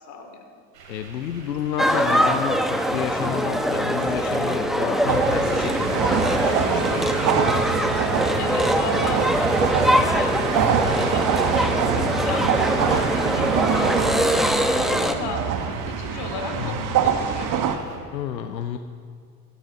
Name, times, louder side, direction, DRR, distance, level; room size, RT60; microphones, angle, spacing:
voice 1, 0.1-0.4 8.2-11.8 12.2-17.6, left 4 dB, 50° left, 3 dB, 2.8 m, -35 dB
sound 1, 0.7-18.0, right 4 dB, 80° right, 2.7 m, -41 dB
voice 2, 0.9-7.5 11.8-12.5 16.6-16.9 18.1-18.8, left 9 dB, 90° left, 8 dB, 0.7 m, -31 dB
sound 2, 1.8-15.2, equal, ahead, 0.9 m, -23 dB
sound 3, 5.1-17.8, right 7 dB, 40° right, 1.4 m, -24 dB
15.5 x 13.5 x 3.9 m, 2.2 s
hypercardioid pair, 80°, 50 cm